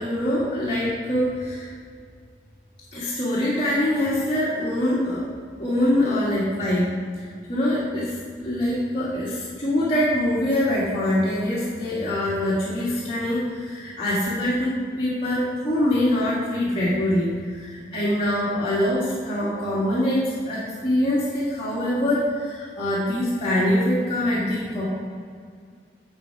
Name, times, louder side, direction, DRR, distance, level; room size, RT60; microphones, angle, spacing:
voice 1, 0.0-1.7 2.9-5.2 5.6-6.9 7.2-8.2 8.4-24.9, left 1 dB, 30° left, -10 dB, 1.9 m, -24 dB
8.1 x 7.4 x 4.8 m, 2.1 s
head